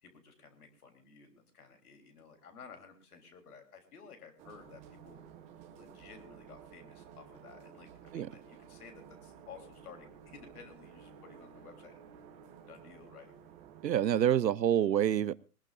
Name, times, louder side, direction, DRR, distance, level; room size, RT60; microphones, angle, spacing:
voice 1, 0.0-5.2 5.7-12.2 12.7-13.3, left 5 dB, 60° left, 3.6 m, -54 dB
sound 1, 4.4-14.1, right 8 dB, 15° right, 0.9 m, -54 dB
voice 2, 13.8-15.3, right 10 dB, 85° right, 0.8 m, -27 dB
21.0 x 20.0 x 2.5 m
hypercardioid pair, 150°, 49 cm